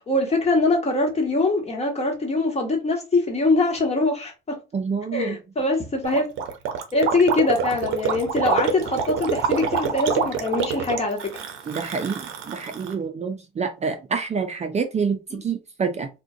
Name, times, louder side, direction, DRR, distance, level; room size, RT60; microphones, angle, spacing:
voice 1, 0.1-4.6 5.1-6.3 6.9-11.3, left 2 dB, 30° left, 1.2 m, -23 dB
voice 2, 4.7-5.4 11.7-16.1, right 5 dB, 35° right, 0.4 m, -27 dB
Gurgling, 6.0-12.9, right 6 dB, 90° right, 0.6 m, -26 dB
2.4 x 2.2 x 3.7 m
cardioid pair, 90°, 20 cm